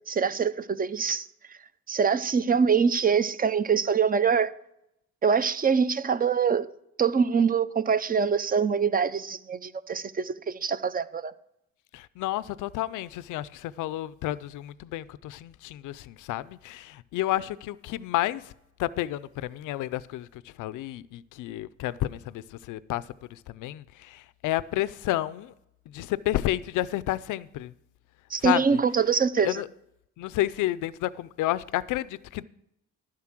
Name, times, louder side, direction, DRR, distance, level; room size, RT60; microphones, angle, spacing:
voice 1, 0.1-1.3 1.9-4.5 5.2-6.7 7.0-11.3 28.3-29.6, right 6 dB, 30° right, 0.6 m, -24 dB
voice 2, 11.9-18.5 18.8-23.0 23.3-25.5 25.9-27.7 28.4-28.6 29.4-29.7 30.2-32.4, left 15 dB, 85° left, 0.5 m, -31 dB
12.0 x 7.5 x 6.0 m
cardioid pair, 90°, 30 cm